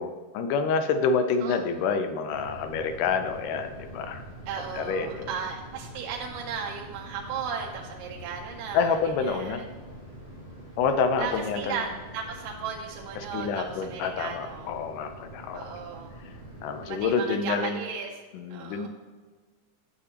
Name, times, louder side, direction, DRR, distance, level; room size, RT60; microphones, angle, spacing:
voice 1, 0.0-4.2 4.7-5.3 8.7-9.6 10.8-11.8 13.2-15.8 16.2-16.3 16.6-17.8 18.3-18.9, left 5 dB, 80° left, 7 dB, 2.2 m, -28 dB
sound 1, 2.3-17.1, right 1 dB, 50° left, 0.7 m, -45 dB
voice 2, 4.5-9.0 9.2-9.6 11.2-14.7 15.5-16.1 16.8-18.1 18.5-18.9, right 6 dB, 85° right, 0 dB, 2.3 m, -35 dB
10.0 x 6.9 x 2.9 m, 1.4 s
omnidirectional pair, 3.8 m